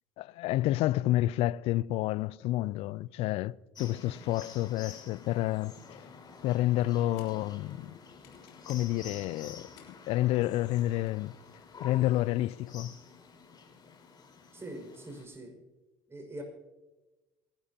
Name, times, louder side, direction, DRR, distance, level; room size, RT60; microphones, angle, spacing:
voice 1, 0.2-6.1 6.4-8.0 8.7-11.3 11.8-13.0, left 15 dB, 65° left, 0.4 m, -29 dB
sound 1, 3.7-15.3, left 5 dB, 40° left, 4.5 m, -49 dB
sound 2, 5.7-13.8, left 10 dB, 80° left, 3.3 m, -67 dB
voice 2, 14.5-15.6 16.1-16.4, right 1 dB, 25° right, 5.4 m, -43 dB
27.0 x 12.0 x 2.9 m
hypercardioid pair, 70°, 11 cm